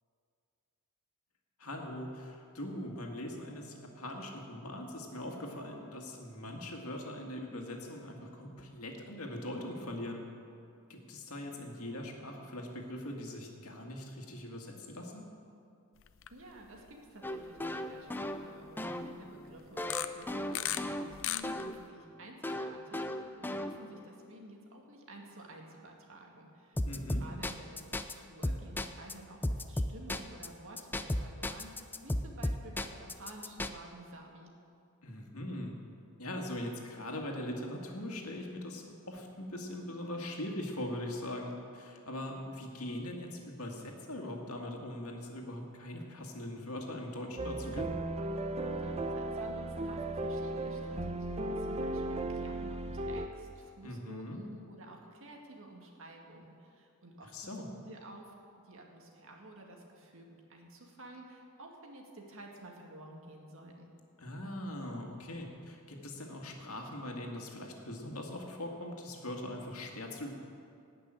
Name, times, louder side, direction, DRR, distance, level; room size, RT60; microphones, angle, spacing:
voice 1, 1.6-10.2 10.9-15.2 26.9-27.2 35.0-35.7 36.2-47.9 53.8-54.4 57.3-57.7 64.2-70.3, left 1 dB, 80° left, 1 dB, 2.0 m, -41 dB
sound 1, 16.1-16.3 16.7-16.9 17.6-17.7 19.8-20.8 21.1-21.8, left 12 dB, 60° left, 0.6 m, -35 dB
voice 2, 16.3-34.5 48.7-58.3 58.6-63.9, right 1 dB, 65° right, 1 dB, 2.1 m, -51 dB
sound 2, 17.2-21.8 22.4-24.1 26.8-28.1 28.4-29.1 29.4-30.5 30.8-33.7, left 1 dB, 10° left, 0.5 m, -35 dB
sound 3, 47.4-53.3, right 2 dB, 30° right, 0.7 m, -36 dB
18.0 x 6.0 x 9.0 m, 2.5 s
head